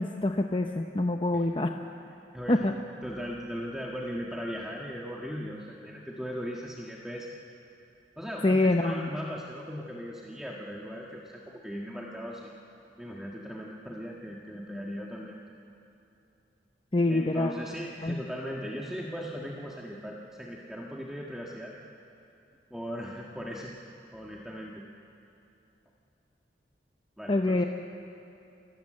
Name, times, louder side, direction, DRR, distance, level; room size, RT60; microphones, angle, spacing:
voice 1, 0.0-1.7 2.5-2.7 8.4-9.1 16.9-17.5 18.0-18.2 27.3-27.6, left 2 dB, 30° left, 4 dB, 0.8 m, -25 dB
voice 2, 2.3-2.7 3.0-7.4 8.2-12.5 13.0-15.4 17.1-21.8 22.7-23.7 24.1-24.8 27.2-27.7, equal, 5° right, -3 dB, 1.5 m, -38 dB
29.0 x 17.0 x 7.7 m, 2.7 s
head